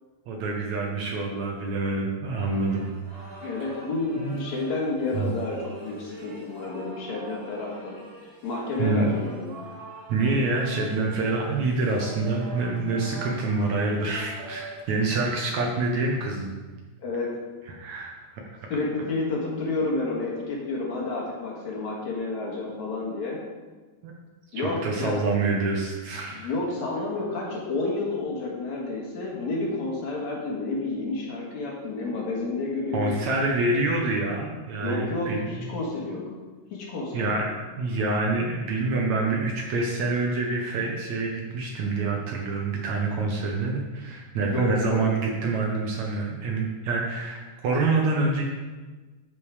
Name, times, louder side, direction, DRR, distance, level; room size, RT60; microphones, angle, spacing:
voice 1, 0.3-2.8 3.4-3.5 4.2-4.5 5.1-5.3 8.8-9.1 10.1-16.5 17.7-18.4 24.0-24.1 24.5-26.5 32.9-35.6 37.1-37.5 37.8-48.4, right 3 dB, 65° right, 0 dB, 2.0 m, -26 dB
sound 1, 2.4-14.8, right 2 dB, 45° right, 0.7 m, -44 dB
voice 2, 3.4-8.0 8.4-9.6 17.0-17.4 18.7-23.4 24.5-25.2 26.3-33.6 34.7-36.3 36.7-37.5 44.4-45.1, left 3 dB, 60° left, -3 dB, 2.9 m, -30 dB
12.5 x 5.3 x 4.9 m, 1.3 s
omnidirectional pair, 4.0 m